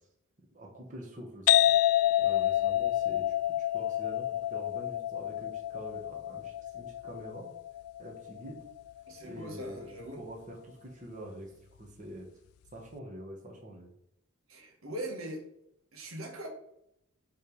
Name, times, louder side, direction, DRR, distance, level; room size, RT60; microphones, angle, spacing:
voice 1, 0.5-1.6 2.2-7.5 8.0-8.6 9.2-11.5 11.8-12.3 12.7-13.9, equal, 35° right, -1 dB, 1.4 m, -45 dB
sound 1, 1.5-8.9, left 13 dB, 85° left, 0.3 m, -28 dB
voice 2, 9.1-10.2 14.5-15.4 15.9-16.5, right 1 dB, 75° right, 2 dB, 1.7 m, -41 dB
7.6 x 3.4 x 5.4 m, 0.76 s
head